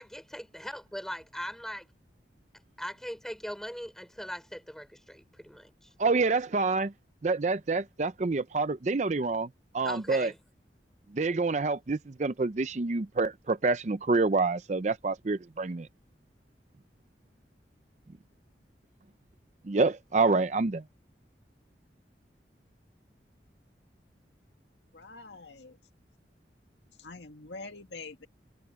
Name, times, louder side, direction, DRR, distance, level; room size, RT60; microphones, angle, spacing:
voice 1, 0.0-1.9 2.8-5.9 9.8-10.4, equal, 5° left, 5.1 m, -40 dB
voice 2, 6.0-6.9 7.2-9.5 9.7-10.3 11.1-15.9 19.6-20.8, right 3 dB, 40° right, 0.5 m, -27 dB
voice 3, 24.9-25.8 27.0-28.3, left 3 dB, 85° left, 2.2 m, -45 dB
head